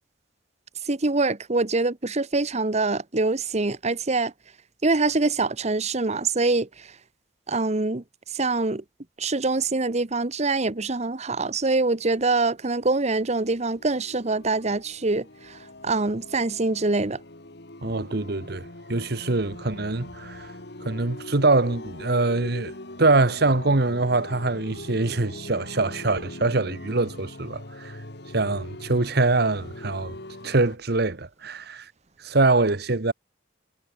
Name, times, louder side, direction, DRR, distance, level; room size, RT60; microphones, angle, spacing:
voice 1, 0.8-4.3 4.8-6.9 7.5-8.0 8.3-8.8 9.2-15.6 15.8-17.2, right 3 dB, 40° right, 1.2 m, -24 dB
sound 1, 12.7-30.8, left 1 dB, 65° left, 2.9 m, -41 dB
voice 2, 17.8-20.5 20.8-22.7 23.0-28.0 28.3-30.1 30.4-31.9 32.2-33.1, right 3 dB, 60° right, 1.4 m, -24 dB
head